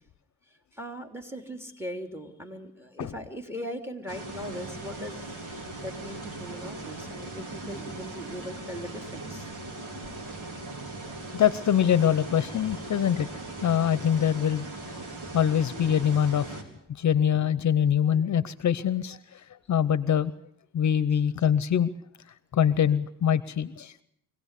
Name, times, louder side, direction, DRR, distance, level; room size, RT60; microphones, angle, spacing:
voice 1, 0.7-9.5 12.6-12.7, equal, 5° right, 5 dB, 3.3 m, -39 dB
sound 1, 4.1-16.6, right 2 dB, 65° right, 4.3 m, -39 dB
voice 2, 11.3-13.3 13.6-14.7 15.3-16.6 17.0-19.2 19.7-20.3 20.7-21.9 22.5-24.0, left 9 dB, 55° left, 15 dB, 0.8 m, -24 dB
24.5 x 17.5 x 8.3 m, 0.71 s
cardioid pair, 105°, 33 cm